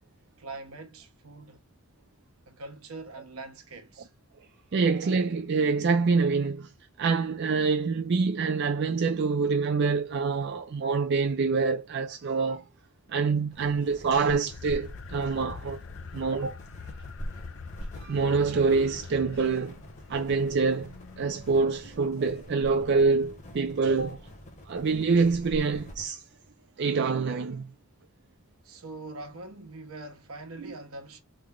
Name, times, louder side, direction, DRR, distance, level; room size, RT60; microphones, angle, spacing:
voice 1, 0.4-1.6 2.5-4.1 16.0-16.1 28.6-31.2, right 2 dB, 85° right, 1.0 m, -43 dB
voice 2, 4.7-6.7 7.0-12.7 13.1-15.8 16.1-16.6 18.0-19.8 20.1-24.2 24.7-26.2 26.8-27.7, right 4 dB, 55° right, 0.4 m, -26 dB
sound 1, 13.5-26.1, equal, 35° left, 0.9 m, -44 dB
sound 2, 14.5-21.7, left 5 dB, 60° left, 0.5 m, -45 dB
3.4 x 2.1 x 3.6 m
head